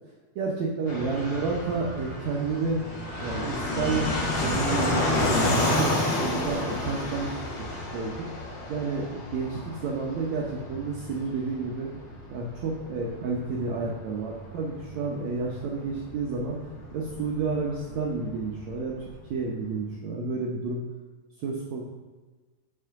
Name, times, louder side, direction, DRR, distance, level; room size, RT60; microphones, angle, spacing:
voice 1, 0.4-2.8 3.2-4.1 4.4-7.4 7.9-8.3 8.7-11.9 12.3-16.6 16.9-20.8 21.4-21.8, right 4 dB, 80° right, -2 dB, 1.6 m, -30 dB
Fixed-wing aircraft airplane, 0.9-19.2, left 1 dB, 50° left, 2.6 m, -31 dB
8.7 x 4.4 x 5.7 m, 1.3 s
omnidirectional pair, 4.4 m